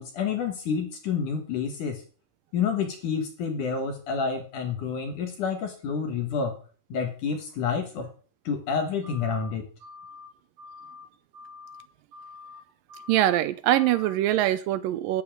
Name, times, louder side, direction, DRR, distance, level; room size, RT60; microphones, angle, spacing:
voice 1, 0.0-2.0 2.5-6.6 6.9-8.1 8.4-9.7, left 6 dB, 60° left, 2.6 m, -29 dB
sound 1, 9.0-9.5 9.8-10.3 10.6-11.1 11.3-11.8 12.1-12.6 12.9-13.4 13.7-14.1, left 4 dB, 55° right, 4.4 m, -46 dB
voice 2, 13.1-15.2, right 13 dB, 75° right, 2.1 m, -23 dB
12.0 x 5.6 x 8.9 m
omnidirectional pair, 4.6 m